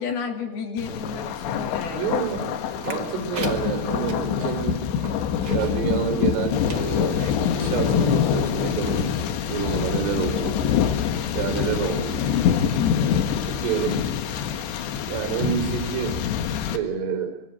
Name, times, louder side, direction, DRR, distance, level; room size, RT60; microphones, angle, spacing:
voice 1, 0.0-2.0 12.8-13.3, left 6 dB, 65° left, 4 dB, 4.5 m, -31 dB
Thunder, 0.8-16.8, left 8 dB, 90° left, 3.8 m, -25 dB
voice 2, 1.9-2.5 2.8-4.8 5.5-10.6 11.3-12.3 13.5-14.0 15.0-16.1 16.7-17.3, right 7 dB, 70° right, 7 dB, 5.6 m, -28 dB
sound 1, 2.2-5.9 6.3-6.4 6.7-7.4 8.0-8.1, right 4 dB, 30° right, 2.3 m, -39 dB
25.5 x 23.5 x 7.6 m, 0.94 s
omnidirectional pair, 4.9 m